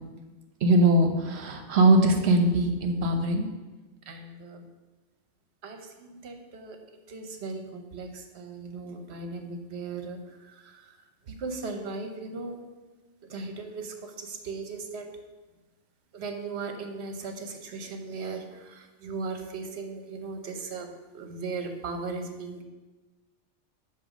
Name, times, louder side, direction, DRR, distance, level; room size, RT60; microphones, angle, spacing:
voice 1, 0.6-3.5 4.1-4.6 5.6-6.8 7.1-10.2 10.6-10.7 11.3-12.6 13.2-15.1 16.1-22.6, right 2 dB, 60° right, 5 dB, 1.1 m, -28 dB
8.8 x 3.0 x 6.2 m, 1.2 s
omnidirectional pair, 1.3 m